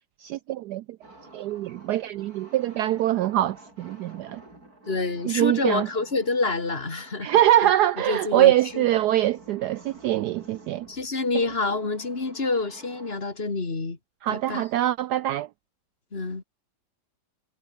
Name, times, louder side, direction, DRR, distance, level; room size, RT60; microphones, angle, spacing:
voice 1, 0.2-0.8 1.3-4.4 5.3-5.9 7.2-10.9 14.2-15.5, right 13 dB, 70° right, 1.0 m, -23 dB
sound 1, 1.0-13.2, right 2 dB, 50° right, 8.2 m, -51 dB
voice 2, 4.9-7.7 8.1-8.8 10.9-14.0 14.3-14.7 16.1-16.4, left 3 dB, 30° left, 2.6 m, -28 dB
omnidirectional pair, 2.0 m